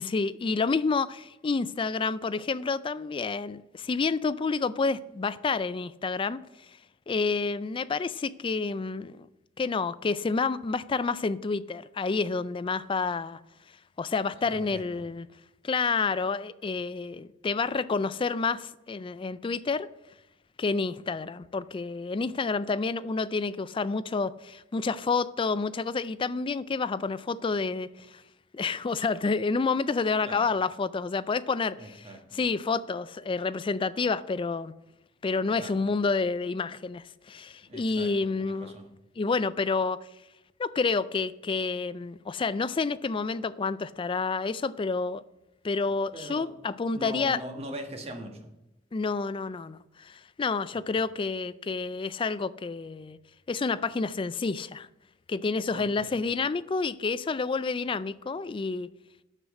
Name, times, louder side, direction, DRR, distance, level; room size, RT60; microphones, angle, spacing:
voice 1, 0.0-6.4 7.1-9.3 9.6-13.4 14.0-15.3 15.6-19.9 20.6-28.2 28.5-32.0 32.3-34.7 35.2-38.7 39.2-40.0 40.6-45.2 45.6-47.4 48.9-53.2 53.5-54.9 55.3-58.9, left 4 dB, 25° left, 0.3 m, -29 dB
voice 2, 14.4-15.0 30.2-30.5 31.8-32.4 35.6-35.9 37.6-38.9 46.1-46.5 46.9-48.5 50.7-51.0 55.7-56.2, right 1 dB, 35° right, 1.5 m, -42 dB
9.8 x 6.4 x 6.4 m
head